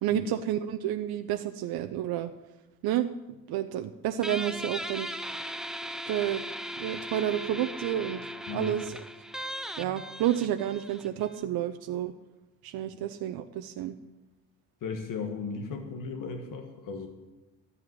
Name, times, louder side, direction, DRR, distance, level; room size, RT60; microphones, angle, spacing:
voice 1, 0.0-2.3 2.8-3.1 3.5-5.1 6.1-6.4 6.8-8.2 8.5-8.9 9.8-12.1 12.6-13.9, right 11 dB, 85° right, 7 dB, 0.7 m, -30 dB
Guitar, 4.2-11.4, equal, ahead, 0.4 m, -38 dB
voice 2, 14.8-17.1, left 5 dB, 60° left, 5 dB, 1.5 m, -36 dB
13.5 x 7.9 x 9.6 m, 1.1 s
cardioid pair, 175°, 36 cm